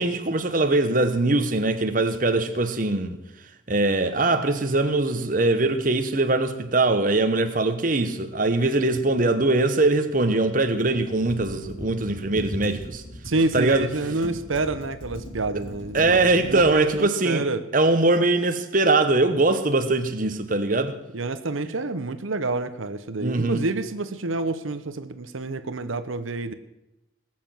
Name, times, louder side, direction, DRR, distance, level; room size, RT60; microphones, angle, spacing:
voice 1, 0.0-3.2 3.7-13.0 13.5-13.9 14.2-14.4 15.9-17.4 17.7-21.0 23.2-23.6, right 2 dB, 40° right, 1.0 m, -22 dB
Computer keyboard, 10.6-16.8, equal, 70° left, 4.5 m, -39 dB
voice 2, 13.2-17.6 21.1-26.5, right 2 dB, 85° right, 0.9 m, -28 dB
19.0 x 7.6 x 7.6 m
head